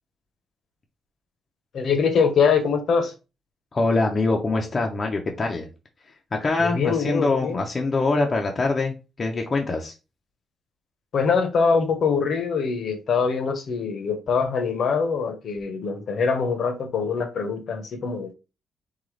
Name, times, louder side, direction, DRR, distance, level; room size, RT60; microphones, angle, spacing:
voice 1, 1.7-3.1 6.6-7.6 11.1-18.3, left 5 dB, 50° left, 0.8 m, -23 dB
voice 2, 3.7-5.7 6.4-9.9, left 3 dB, 25° left, 0.6 m, -24 dB
3.9 x 3.8 x 3.2 m
cardioid pair, 175°, 0 cm